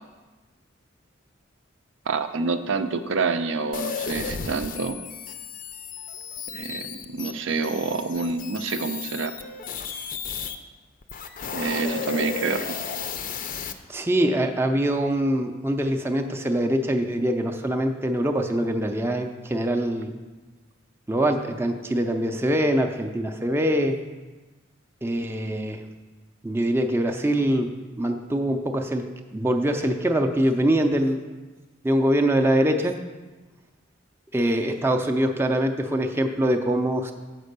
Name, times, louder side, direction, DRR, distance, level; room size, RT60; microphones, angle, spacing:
voice 1, 2.1-5.0 6.5-9.3 11.5-12.8, right 4 dB, 70° right, 8 dB, 0.5 m, -27 dB
sound 1, 3.7-10.6 11.0-13.7, left 6 dB, 45° left, 0.5 m, -34 dB
voice 2, 13.9-20.1 21.1-24.0 25.0-25.8 26.4-27.7 28.0-29.0 29.3-31.2 31.8-33.0 34.3-37.1, right 1 dB, 10° right, 3 dB, 0.4 m, -23 dB
7.4 x 5.2 x 6.6 m, 1.2 s
head